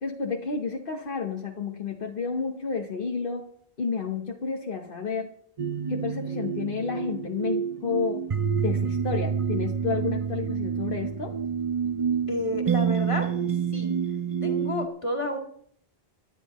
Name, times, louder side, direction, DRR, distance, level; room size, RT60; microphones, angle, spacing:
voice 1, 0.0-3.5 3.8-5.3 5.9-8.2 8.6-11.3, left 5 dB, 60° left, 1 dB, 1.3 m, -31 dB
sound 1, 5.6-14.9, right 7 dB, 40° right, 0.6 m, -28 dB
voice 2, 12.3-13.3 13.7-13.9 14.4-15.4, left 1 dB, 30° left, 2 dB, 2.2 m, -30 dB
24.0 x 10.5 x 3.0 m, 0.66 s
omnidirectional pair, 1.0 m